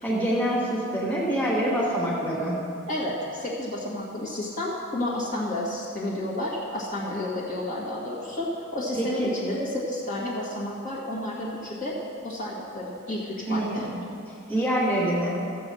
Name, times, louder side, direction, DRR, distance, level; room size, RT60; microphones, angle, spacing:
voice 1, 0.0-2.6 9.0-9.1 13.5-14.0 14.5-15.3, right 1 dB, 10° left, -6 dB, 2.2 m, -25 dB
voice 2, 2.9-11.9 12.2-13.9, left 1 dB, 35° left, -6 dB, 1.7 m, -31 dB
14.5 x 7.4 x 5.5 m, 2.5 s
head